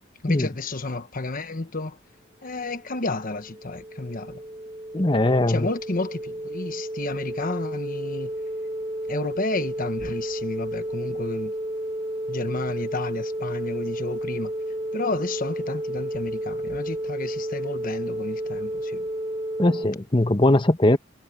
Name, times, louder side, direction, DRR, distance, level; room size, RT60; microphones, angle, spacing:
voice 1, 0.2-2.0 2.4-4.4 5.5-8.3 9.1-11.5 12.3-14.5 14.9-19.1, left 2 dB, 45° left, 1.3 m, -31 dB
sound 1, 2.8-19.8, right 1 dB, 20° right, 4.3 m, -32 dB
voice 2, 4.9-5.7 19.6-21.0, left 1 dB, 25° left, 1.1 m, -20 dB
head